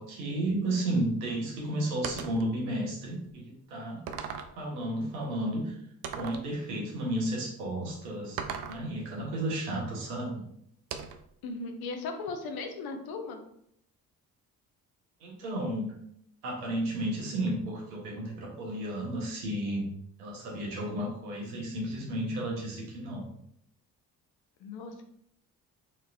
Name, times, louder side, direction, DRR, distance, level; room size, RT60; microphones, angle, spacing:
voice 1, 0.0-4.0 4.5-5.7 6.2-8.4 8.7-10.3 15.2-15.9 16.4-19.9 20.2-23.2, right 1 dB, 75° right, -2 dB, 1.2 m, -32 dB
sound 1, 2.0-2.5 3.3-3.4 4.1-4.6 6.0-6.5 8.4-8.9 10.9-11.3, right 7 dB, 50° right, 0.5 m, -37 dB
voice 2, 11.4-13.4 24.6-25.0, left 3 dB, 50° left, 4 dB, 0.8 m, -37 dB
4.2 x 3.1 x 2.6 m, 0.72 s
figure-of-eight pair, 45°, 46 cm